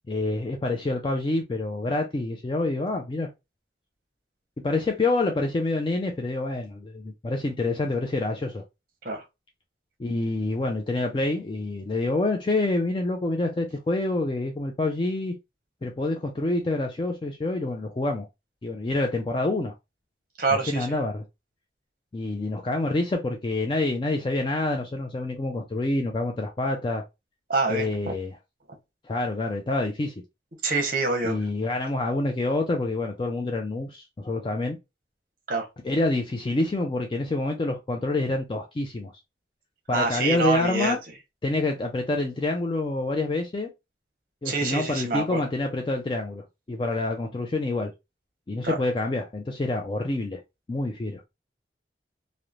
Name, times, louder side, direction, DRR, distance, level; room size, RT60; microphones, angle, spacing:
voice 1, 0.1-3.3 4.6-8.6 10.0-15.4 15.8-18.3 18.6-19.7 20.5-21.2 22.1-27.0 27.7-28.4 29.0-30.1 31.2-34.8 35.8-39.1 39.9-41.0 41.4-43.7 44.4-47.9 48.5-50.4 50.7-51.2, left 2 dB, 25° left, 0.3 m, -27 dB
voice 2, 20.4-21.0 27.5-27.9 30.6-31.4 35.5-35.7 39.9-41.0 44.4-45.4 48.6-48.8, right 3 dB, 50° right, 0.8 m, -26 dB
3.0 x 2.0 x 2.4 m
head